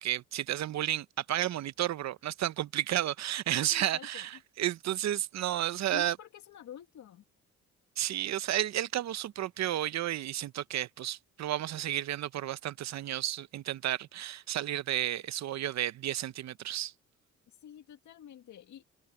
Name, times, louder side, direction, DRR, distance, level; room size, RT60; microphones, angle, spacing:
voice 1, 0.0-6.2 8.0-16.9, right 12 dB, 65° right, 0.8 m, -32 dB
voice 2, 3.7-4.3 5.9-7.2 17.5-18.8, left 10 dB, 70° left, 2.1 m, -48 dB
cardioid pair, 90°, 30 cm